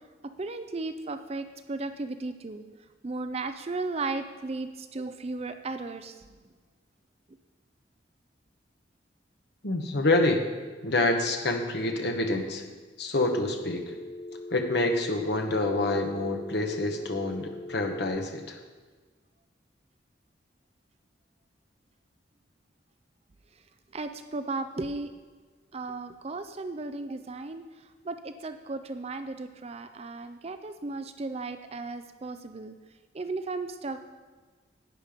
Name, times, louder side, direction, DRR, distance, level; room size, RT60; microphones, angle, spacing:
voice 1, 0.4-2.6 3.0-6.2 23.9-25.1 25.7-27.6 28.0-32.7 33.1-34.1, right 3 dB, 35° right, 9 dB, 0.5 m, -35 dB
voice 2, 9.6-10.4 10.8-12.6 13.0-13.9 14.5-18.6, left 2 dB, 65° left, 3 dB, 1.2 m, -27 dB
Telephone, 13.2-18.2, left 2 dB, 20° left, 0.4 m, -41 dB
11.0 x 9.0 x 5.1 m, 1.4 s
head